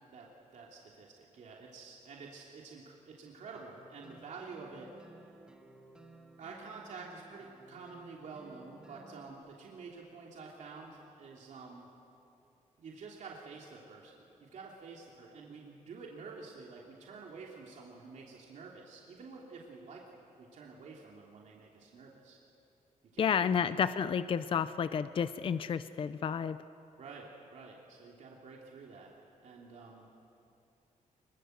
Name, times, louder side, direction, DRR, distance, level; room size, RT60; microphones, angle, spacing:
voice 1, 0.1-4.9 6.4-11.9 12.8-22.4 23.1-23.6 27.0-29.1 29.4-30.1, right 4 dB, 65° right, -2 dB, 2.9 m, -49 dB
sound 1, 3.5-9.3, right 2 dB, 5° right, 1.7 m, -57 dB
voice 2, 23.2-26.6, left 7 dB, 40° left, 13 dB, 0.5 m, -31 dB
26.0 x 22.0 x 8.0 m, 2.7 s
wide cardioid pair, 160°, 13 cm